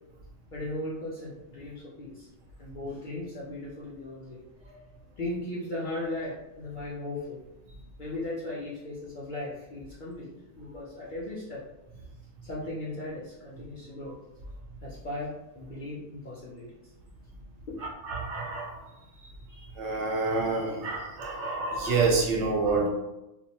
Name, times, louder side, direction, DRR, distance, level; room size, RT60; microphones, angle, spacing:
voice 1, 0.5-2.3 2.6-4.4 5.2-7.4 8.0-10.3 10.6-11.6 12.4-14.1 14.8-16.7 17.7-17.8, left 2 dB, 60° left, -7 dB, 0.5 m, -37 dB
voice 2, 18.0-18.8 19.8-22.9, right 3 dB, 70° right, -1 dB, 0.8 m, -27 dB
2.5 x 2.1 x 2.7 m, 0.95 s
omnidirectional pair, 1.3 m